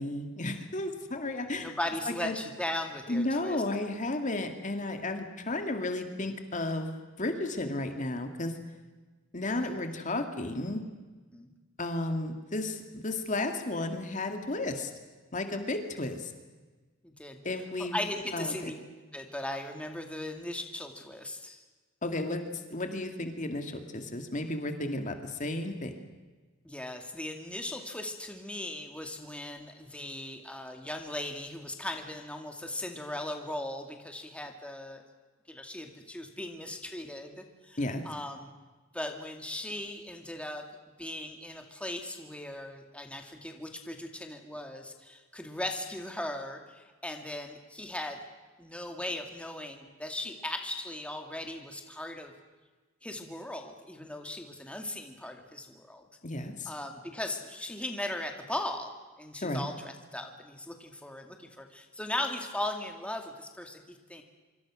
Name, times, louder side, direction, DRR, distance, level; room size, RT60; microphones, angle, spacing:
voice 1, 0.0-1.7 2.1-2.4 3.1-6.9 7.2-8.5 9.3-10.8 11.8-14.9 15.3-16.3 17.4-18.0 18.3-18.7 22.0-22.4 22.7-25.9 37.8-38.0 56.2-56.7 59.4-59.6, left 2 dB, 40° left, 6 dB, 2.2 m, -33 dB
voice 2, 1.6-3.6 9.5-9.8 11.3-11.6 16.0-16.1 17.0-17.4 17.8-18.7 19.1-21.6 26.6-35.0 35.5-37.8 38.0-38.5 38.9-40.6 41.0-48.2 48.6-52.3 53.0-56.0 56.7-58.9 59.2-64.2, left 1 dB, 5° left, 4 dB, 2.3 m, -38 dB
25.5 x 25.5 x 6.3 m, 1.3 s
head